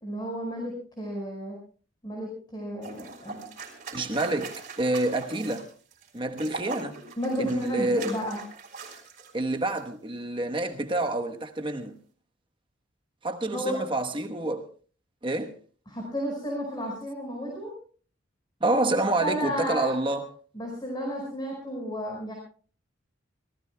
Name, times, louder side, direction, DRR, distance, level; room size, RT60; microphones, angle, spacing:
voice 1, 0.0-1.6 2.0-3.5 7.2-8.4 13.5-13.8 15.9-17.7 19.2-20.0 20.6-22.3, equal, 20° left, 5.2 m, -32 dB
sound 1, 2.8-9.3 9.6-9.8, right 4 dB, 40° right, 4.6 m, -41 dB
voice 2, 3.9-5.7 6.1-7.0 7.4-8.1 9.3-12.0 13.2-14.7 15.2-15.5 18.6-20.3, right 2 dB, 25° right, 1.1 m, -28 dB
27.0 x 18.0 x 2.3 m
head